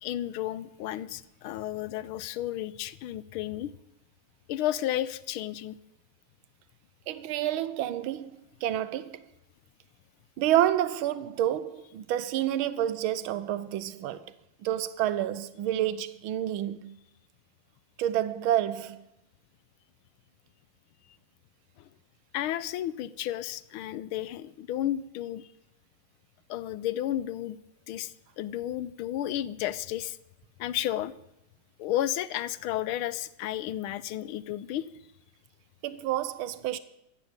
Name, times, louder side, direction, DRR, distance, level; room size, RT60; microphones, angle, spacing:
voice 1, 0.0-3.7 4.5-5.8 22.3-25.5 26.5-27.6 27.9-30.2 30.6-31.1 31.8-34.9, left 12 dB, 85° left, 1.6 m, -32 dB
voice 2, 7.1-9.2 10.4-14.3 14.6-17.0 18.0-19.0 35.8-36.8, right 12 dB, 80° right, 1.6 m, -29 dB
15.5 x 10.0 x 8.8 m
omnidirectional pair, 2.2 m